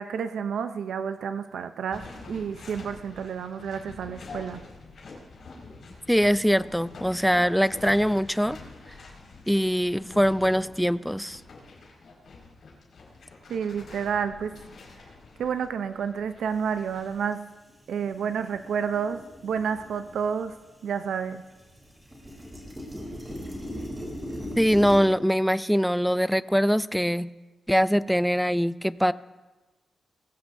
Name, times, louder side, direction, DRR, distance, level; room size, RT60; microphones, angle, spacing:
voice 1, 0.0-4.6 13.5-14.6 15.4-17.5 17.9-20.5 20.8-21.4, right 7 dB, 90° right, 9 dB, 0.5 m, -30 dB
sound 1, 1.9-17.1, left 3 dB, 60° left, 5.0 m, -46 dB
voice 2, 6.1-8.6 9.5-11.4 24.6-27.3 27.7-29.1, equal, ahead, 16 dB, 0.3 m, -23 dB
sound 2, 17.2-17.3 17.7-20.7 21.0-25.0, equal, 15° right, 3.5 m, -39 dB
21.0 x 16.0 x 2.6 m, 1.2 s
wide cardioid pair, 135°, 0 cm